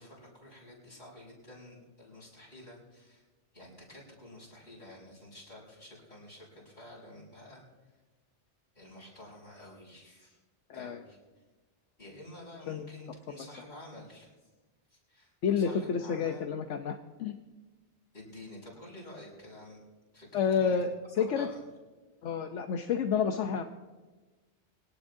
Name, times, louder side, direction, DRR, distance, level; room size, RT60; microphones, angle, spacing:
voice 1, 0.0-3.2 3.5-7.9 8.7-10.4 10.7-11.2 12.0-14.5 14.9-16.5 18.1-19.8 20.1-20.8 21.1-21.6, left 1 dB, 50° left, -5 dB, 6.6 m, -50 dB
voice 2, 15.4-17.4 20.3-20.9 21.2-21.5 22.2-23.6, left 7 dB, 85° left, 6 dB, 1.1 m, -29 dB
23.0 x 18.0 x 2.7 m, 1.3 s
omnidirectional pair, 1.2 m